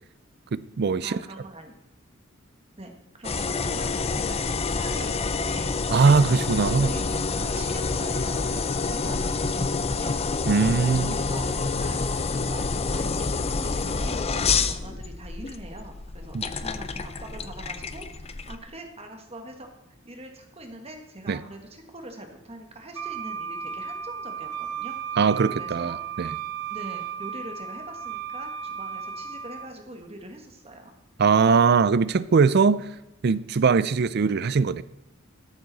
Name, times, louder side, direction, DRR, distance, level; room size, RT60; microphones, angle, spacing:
voice 1, 0.5-1.2 5.9-6.9 10.5-11.2 16.3-16.4 21.3-21.4 25.2-26.3 31.2-32.9 33.2-34.8, right 5 dB, 50° right, 0.4 m, -21 dB
voice 2, 1.0-1.8 2.8-5.9 6.3-12.6 12.9-25.0 25.6-26.0 26.7-30.9, right 1 dB, 30° right, 1.5 m, -43 dB
sound 1, 3.2-18.6, left 4 dB, 30° left, 0.6 m, -28 dB
Wind instrument woodwind instrument, 23.0-29.7, right 7 dB, 80° right, 0.7 m, -34 dB
13.5 x 12.0 x 4.0 m
head